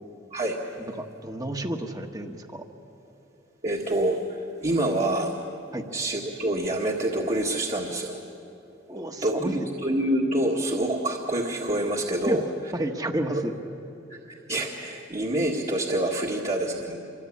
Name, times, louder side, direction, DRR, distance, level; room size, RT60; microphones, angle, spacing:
voice 1, 0.9-2.6 5.7-5.8 8.9-9.5 12.2-12.4 12.7-13.5, right 1 dB, 20° right, 5 dB, 1.4 m, -31 dB
voice 2, 3.6-5.4 5.9-8.2 9.2-12.4 13.3-13.4 14.1-17.0, right 1 dB, 35° right, -2 dB, 1.8 m, -27 dB
27.0 x 23.5 x 8.7 m, 2.9 s
head